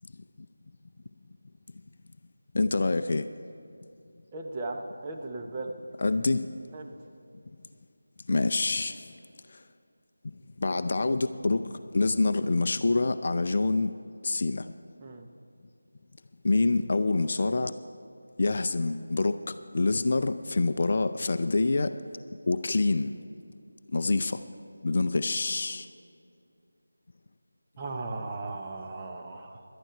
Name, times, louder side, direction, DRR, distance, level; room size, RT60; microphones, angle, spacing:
voice 1, 2.5-3.3 6.0-6.5 8.3-9.0 9.5-9.6 10.6-13.9 14.2-14.7 16.4-17.7 18.4-21.9 22.5-23.2 23.9-24.4 24.8-25.9, left 3 dB, 45° left, 10 dB, 0.5 m, -26 dB
voice 2, 4.3-5.7 6.7-6.9 15.0-15.3 27.8-29.6, right 2 dB, 20° right, 1 dB, 0.9 m, -37 dB
18.0 x 12.0 x 4.5 m, 2.5 s
figure-of-eight pair, 165°, 0 cm